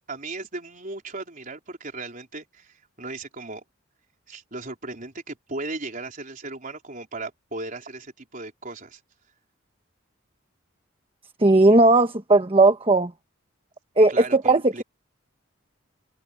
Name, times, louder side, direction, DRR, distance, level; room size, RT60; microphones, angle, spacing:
voice 1, 0.1-3.6 4.3-9.0 14.1-14.8, right 2 dB, 45° right, 4.4 m, -36 dB
voice 2, 11.4-13.1 14.0-14.8, right 2 dB, 25° right, 1.2 m, -17 dB
head